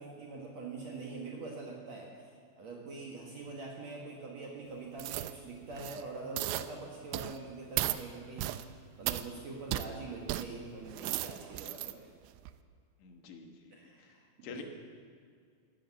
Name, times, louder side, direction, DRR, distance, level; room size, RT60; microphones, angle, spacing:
voice 1, 0.0-12.1 13.7-14.6, right 3 dB, 55° right, -1 dB, 2.1 m, -44 dB
sound 1, 5.0-5.3 5.7-6.0 6.4-6.7 7.1-7.4 7.8-8.0 8.4-8.6 9.1-9.2 9.7-9.9 10.3-10.4 10.9-11.9 12.4-12.5, right 15 dB, 90° right, 2.9 m, -35 dB
voice 2, 13.0-14.2 14.4-14.6, left 7 dB, 90° left, 4 dB, 3.6 m, -48 dB
16.0 x 12.0 x 7.3 m, 2.1 s
omnidirectional pair, 5.0 m